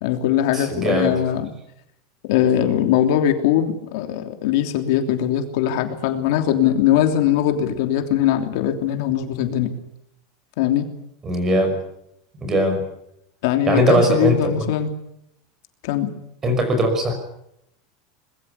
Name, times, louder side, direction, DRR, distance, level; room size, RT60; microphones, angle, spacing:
voice 1, 0.0-1.5 2.3-9.7 10.6-10.8 13.4-14.9 15.8-16.1, left 10 dB, 60° left, 6 dB, 3.2 m, -20 dB
voice 2, 0.5-1.1 11.2-11.7 12.4-12.8 13.7-14.4 16.4-17.1, right 1 dB, 15° right, 7 dB, 5.6 m, -19 dB
23.5 x 22.0 x 8.3 m, 0.77 s
supercardioid pair, 170°, 2 cm